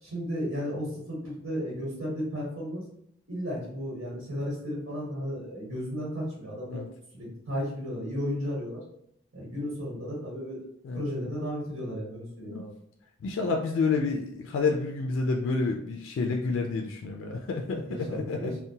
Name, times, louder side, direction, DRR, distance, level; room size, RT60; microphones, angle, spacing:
voice 1, 0.0-2.9 3.3-6.9 7.1-8.8 9.3-10.7 10.9-12.7 17.8-18.6, equal, 85° right, -7 dB, 1.2 m, -34 dB
voice 2, 13.2-18.6, left 4 dB, 65° left, 2 dB, 0.3 m, -29 dB
2.7 x 2.1 x 2.7 m, 0.72 s
head